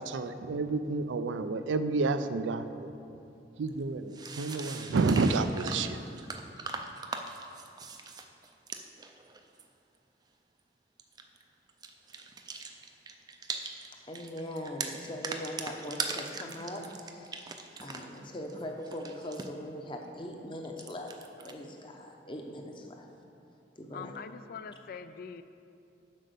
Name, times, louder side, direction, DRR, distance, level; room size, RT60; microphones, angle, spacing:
voice 1, 0.0-2.9 3.6-6.1, right 3 dB, 90° right, 0.4 m, -30 dB
sound 1, 3.7-3.8 4.1-9.6 11.0-11.4 11.7-13.9 14.1-18.2 18.5-19.5 20.6-21.5, right 4 dB, 20° right, 0.4 m, -41 dB
voice 2, 13.9-17.5 17.8-23.1 23.8-24.1, left 1 dB, 25° left, 0.7 m, -41 dB
voice 3, 23.9-25.4, left 6 dB, 50° left, 0.3 m, -43 dB
7.5 x 5.3 x 6.8 m
head